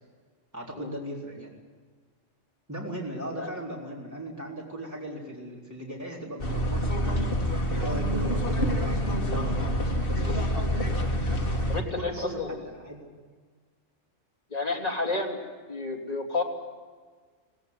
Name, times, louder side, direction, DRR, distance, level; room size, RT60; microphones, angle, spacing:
voice 1, 0.5-1.5 2.7-7.4 7.7-10.2 12.0-13.1, equal, 15° right, -3 dB, 3.9 m, -37 dB
sound 1, 6.4-11.8, equal, 45° left, 2.2 m, -27 dB
voice 2, 11.7-12.5 14.5-15.4 15.7-16.4, left 3 dB, 30° left, -1 dB, 3.4 m, -30 dB
19.0 x 18.0 x 9.7 m, 1.5 s
omnidirectional pair, 1.3 m